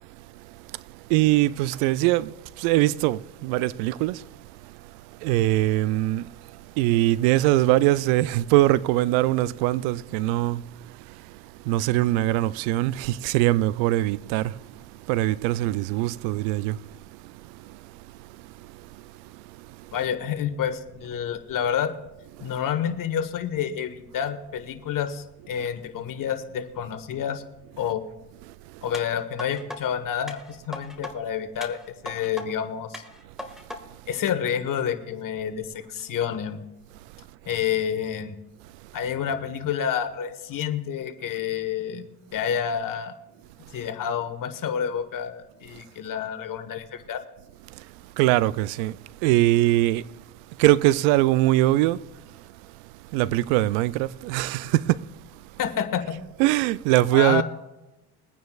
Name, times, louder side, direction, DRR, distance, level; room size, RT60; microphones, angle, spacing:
voice 1, 1.1-4.3 5.2-6.3 6.8-10.7 11.6-16.8 17.6-17.8 47.8-47.9 48.2-50.1 50.6-52.1 53.1-55.1 56.4-57.4, right 16 dB, 70° right, 0.5 m, -22 dB
voice 2, 19.9-21.9 22.4-27.4 27.8-28.0 28.8-33.0 34.1-36.6 37.4-38.3 38.9-43.1 43.7-47.2 55.6-56.2 57.1-57.4, left 8 dB, 45° left, 1.4 m, -29 dB
sound 1, 28.9-29.8 30.3-31.1 31.6-32.5 32.9-33.8 34.3-34.4, left 1 dB, ahead, 1.7 m, -38 dB
22.5 x 9.3 x 2.4 m
hypercardioid pair, 75°, 43 cm